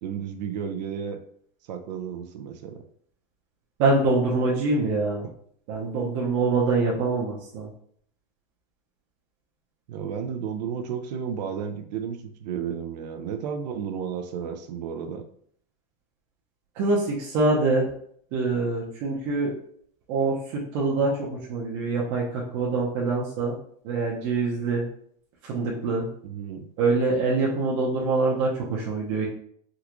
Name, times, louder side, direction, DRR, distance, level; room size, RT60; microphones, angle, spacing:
voice 1, 0.0-1.2 1.7-2.8 9.9-15.2 26.2-26.7, right 7 dB, 85° right, 7 dB, 0.6 m, -32 dB
voice 2, 3.8-5.2 5.7-7.7 16.8-17.9 18.3-19.5 20.1-23.5 23.8-24.8 25.4-26.1 26.8-29.3, right 3 dB, 50° right, -4 dB, 0.8 m, -24 dB
3.7 x 2.4 x 2.9 m, 0.63 s
supercardioid pair, 160°, 21 cm